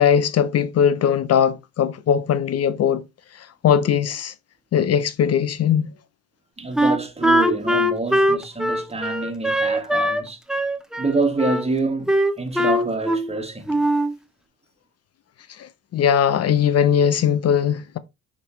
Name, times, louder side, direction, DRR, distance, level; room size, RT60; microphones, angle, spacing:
voice 1, 0.0-3.0 3.3-4.3 4.7-5.9 15.5-18.0, left 8 dB, 55° left, 0.6 m, -20 dB
voice 2, 6.6-10.4 11.0-13.8, right 3 dB, 20° right, 1.8 m, -26 dB
Wind instrument woodwind instrument, 6.8-10.2 10.5-11.6 12.1-13.4 13.7-14.1, equal, ahead, 0.9 m, -21 dB
7.5 x 5.2 x 3.1 m
cardioid pair, 90°, 30 cm